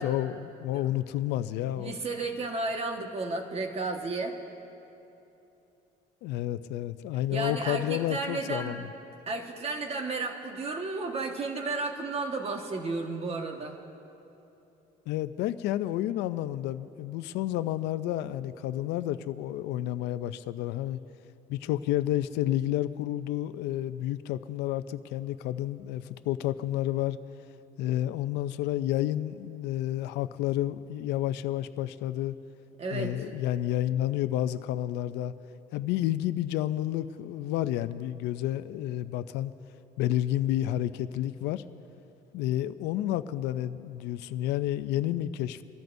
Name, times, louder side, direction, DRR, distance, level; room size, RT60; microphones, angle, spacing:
voice 1, 0.0-1.9 6.2-8.9 15.1-21.0 21.5-27.2 27.8-32.3 32.9-35.3 35.7-39.5 40.0-41.6 42.3-45.6, left 13 dB, 90° left, 13 dB, 0.5 m, -30 dB
voice 2, 1.7-4.4 7.3-8.8 9.3-13.8 32.8-33.2, right 3 dB, 35° right, 3 dB, 1.5 m, -33 dB
26.5 x 13.5 x 2.7 m, 2.9 s
cardioid pair, 110°, 17 cm